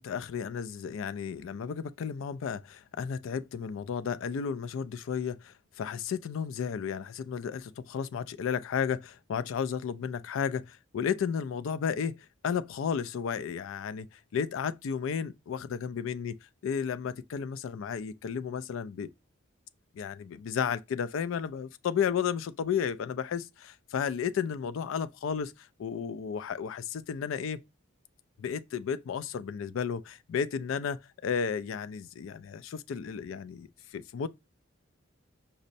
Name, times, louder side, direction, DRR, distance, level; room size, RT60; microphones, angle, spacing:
voice 1, 0.0-19.1 19.9-27.6 28.4-33.7 33.9-34.3, left 7 dB, 70° left, 0.3 m, -33 dB
5.1 x 2.0 x 2.6 m
head